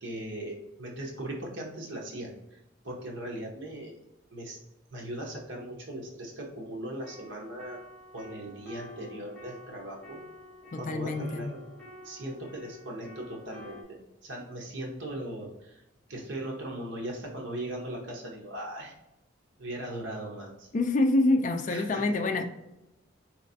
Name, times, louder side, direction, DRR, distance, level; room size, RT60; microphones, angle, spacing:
voice 1, 0.0-2.6 2.8-3.9 4.3-4.6 4.9-7.8 8.1-10.2 10.8-11.6 12.0-15.8 16.1-19.0 19.6-20.7 21.7-22.4, right 1 dB, 70° right, -1 dB, 1.0 m, -39 dB
sound 1, 7.0-13.8, left 1 dB, 5° left, 0.9 m, -49 dB
voice 2, 10.7-11.5 20.7-22.4, left 2 dB, 40° left, 6 dB, 0.3 m, -26 dB
4.1 x 3.2 x 2.6 m, 0.91 s
head